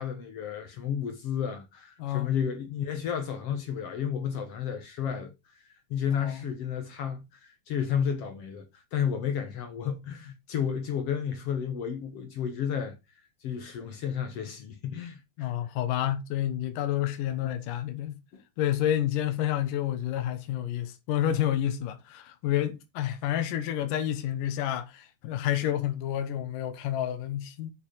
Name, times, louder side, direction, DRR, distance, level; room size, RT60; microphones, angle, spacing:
voice 1, 0.0-13.0 13.4-15.5 18.3-18.4, left 8 dB, 60° left, 1.8 m, -32 dB
voice 2, 6.1-6.5 15.4-18.2 18.6-27.7, left 11 dB, 80° left, 2.6 m, -29 dB
7.6 x 6.6 x 4.2 m
omnidirectional pair, 3.8 m